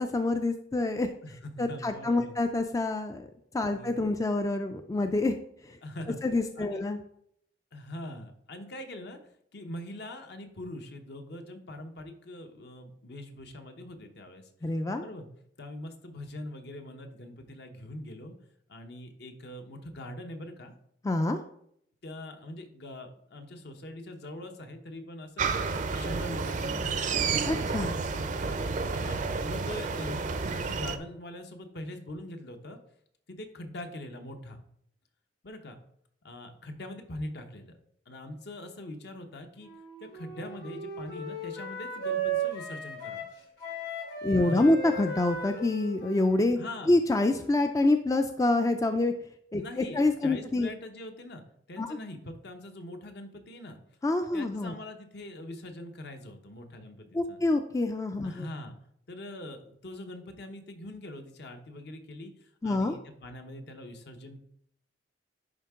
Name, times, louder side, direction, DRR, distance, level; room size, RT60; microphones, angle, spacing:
voice 1, 0.0-1.1 1.6-3.3 3.5-5.3 5.7-5.8 6.2-7.0 14.6-15.0 21.0-21.4 27.5-28.0 44.2-46.6 46.9-49.1 49.5-50.7 51.8-51.9 54.0-54.7 57.1-58.5 62.6-63.0, left 2 dB, 20° left, 7 dB, 0.3 m, -26 dB
voice 2, 1.2-2.3 3.7-4.2 5.8-6.2 6.6-6.8 7.7-9.2 9.5-14.5 15.0-15.3 15.6-18.3 18.7-20.7 22.0-25.5 25.8-27.1 28.9-30.2 30.5-32.8 33.3-34.6 35.4-35.8 36.2-37.8 38.1-39.7 40.0-43.2 44.4-44.7 46.6-47.0 49.6-51.4 51.7-53.8 54.3-57.4 58.2-58.7 59.1-64.4, left 1 dB, 65° left, 5 dB, 0.9 m, -42 dB
sound 1, 25.4-31.0, right 4 dB, 45° right, 0.5 m, -30 dB
Wind instrument woodwind instrument, 39.6-47.6, right 3 dB, 85° left, 3.1 m, -36 dB
10.5 x 3.7 x 3.6 m, 0.70 s
head